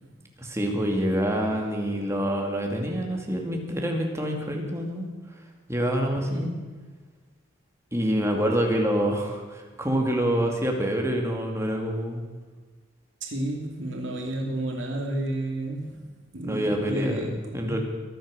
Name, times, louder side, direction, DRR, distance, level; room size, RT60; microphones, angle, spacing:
voice 1, 0.4-5.1 5.7-6.5 7.9-12.2 16.4-17.8, equal, 15° right, 1 dB, 2.4 m, -26 dB
voice 2, 6.2-6.6 13.2-17.8, right 1 dB, 65° right, 1 dB, 2.7 m, -31 dB
23.5 x 9.1 x 6.5 m, 1.4 s
head